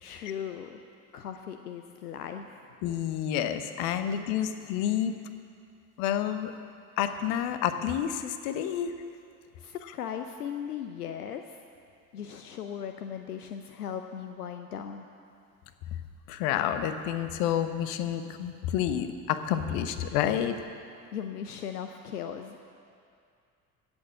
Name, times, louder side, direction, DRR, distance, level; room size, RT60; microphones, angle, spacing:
voice 1, 0.0-0.8 1.1-2.6 9.6-11.6 12.1-15.0 21.1-22.6, left 8 dB, 75° left, 7 dB, 0.7 m, -38 dB
voice 2, 2.8-5.1 6.0-6.5 7.0-8.9 16.3-20.6, left 10 dB, 55° left, 10 dB, 0.9 m, -29 dB
16.0 x 7.1 x 7.5 m, 2.4 s
figure-of-eight pair, 60°, 46 cm